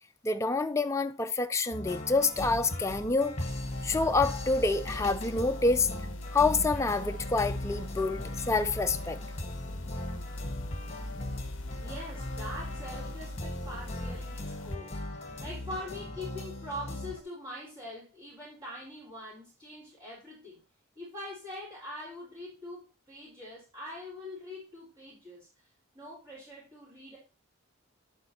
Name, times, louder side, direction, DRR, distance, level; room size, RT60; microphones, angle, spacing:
voice 1, 0.2-3.4 3.8-5.9 6.3-9.2, left 3 dB, 15° left, 0.4 m, -27 dB
sound 1, 1.7-17.2, left 1 dB, 30° left, 1.5 m, -39 dB
sound 2, 3.4-14.8, left 1 dB, 60° left, 0.6 m, -41 dB
voice 2, 11.8-20.6 20.9-27.2, left 1 dB, 25° right, 4.7 m, -43 dB
10.5 x 8.0 x 2.9 m
head